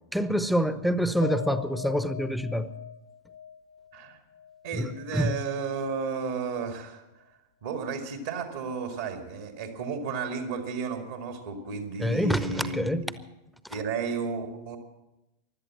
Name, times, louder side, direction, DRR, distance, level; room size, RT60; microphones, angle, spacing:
voice 1, 0.1-2.7 4.7-5.4 12.0-13.1 13.6-13.8, equal, ahead, 0.8 m, -27 dB
Piano, 1.2-5.7 6.1-6.2 6.6-6.7, left 7 dB, 70° left, 1.3 m, -41 dB
voice 2, 4.6-7.0 7.6-13.1 13.7-14.8, right 5 dB, 60° right, 2.0 m, -33 dB
16.5 x 11.5 x 7.4 m
figure-of-eight pair, 90°, 0 cm